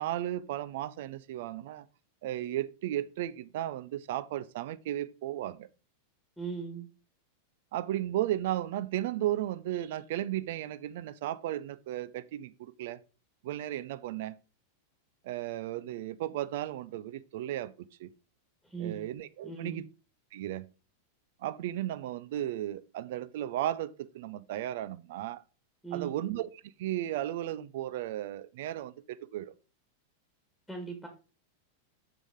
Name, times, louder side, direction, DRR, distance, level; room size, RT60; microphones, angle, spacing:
voice 1, 0.0-1.9 2.2-5.7 7.7-13.0 13.4-14.4 15.2-18.1 18.8-19.8 20.3-20.7 21.4-25.4 25.9-26.5 26.8-29.5, right 13 dB, 55° right, 0.4 m, -35 dB
voice 2, 6.4-6.9 18.6-19.0 19.4-19.8 25.8-26.2 30.7-31.1, right 6 dB, ahead, 1.7 m, -38 dB
6.8 x 6.0 x 3.6 m
figure-of-eight pair, 90°, 0 cm